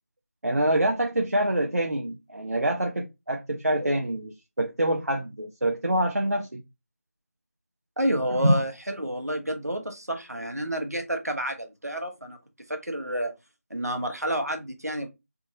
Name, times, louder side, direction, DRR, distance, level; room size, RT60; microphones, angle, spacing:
voice 1, 0.4-6.6 8.4-8.6, right 1 dB, 70° right, 0.8 m, -25 dB
voice 2, 8.0-12.4 12.7-13.3 13.7-15.1, right 1 dB, 90° right, 1.2 m, -29 dB
3.5 x 2.6 x 3.0 m
figure-of-eight pair, 165°, 8 cm